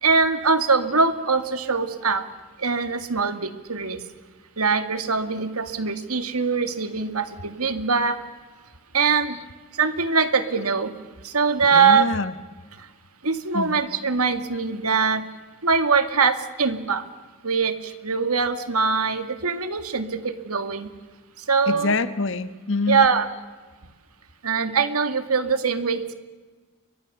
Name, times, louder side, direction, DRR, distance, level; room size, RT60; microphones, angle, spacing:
voice 1, 0.0-2.2 2.6-4.0 4.6-8.2 8.9-9.4 9.7-10.9 11.2-12.1 12.8-12.9 13.2-15.2 15.6-17.0 17.4-20.9 21.4-21.9 22.9-23.3 24.4-26.1, right 5 dB, 90° right, 9 dB, 2.2 m, -22 dB
voice 2, 11.7-12.3 13.5-13.9 21.7-23.1, left 3 dB, 55° left, 12 dB, 1.2 m, -25 dB
30.0 x 24.0 x 7.0 m, 1.3 s
head